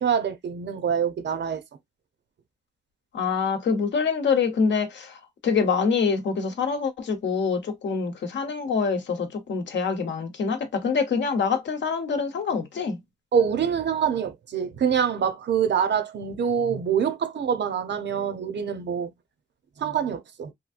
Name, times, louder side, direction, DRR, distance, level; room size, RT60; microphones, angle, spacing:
voice 1, 0.0-1.6 13.3-19.1 19.8-20.5, right 7 dB, 70° right, 0.7 m, -25 dB
voice 2, 3.1-13.0, left 5 dB, 80° left, 0.9 m, -25 dB
3.1 x 2.6 x 2.4 m
cardioid pair, 85°, 19 cm